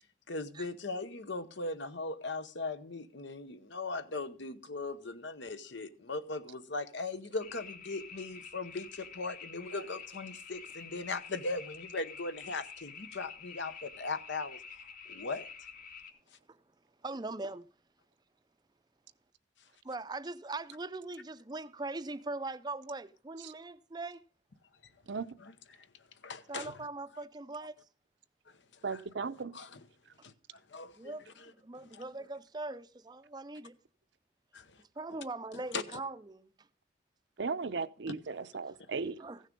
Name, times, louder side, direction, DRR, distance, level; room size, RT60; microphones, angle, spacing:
voice 1, 0.3-14.6 15.1-15.5 25.4-25.5 26.2-26.8 28.9-29.0 29.5-29.8 30.2-31.5 31.9-32.0 34.5-34.8 35.7-36.0, left 3 dB, 75° left, 1.0 m, -39 dB
sound 1, 7.4-16.1, left 5 dB, 45° left, 1.3 m, -48 dB
voice 2, 17.0-17.7 19.8-24.2 26.5-27.8 31.0-33.8 35.0-36.5 39.2-39.4, right 2 dB, 20° right, 0.5 m, -41 dB
voice 3, 28.8-29.5 37.4-39.2, right 4 dB, 70° right, 0.6 m, -36 dB
15.5 x 6.5 x 5.2 m
head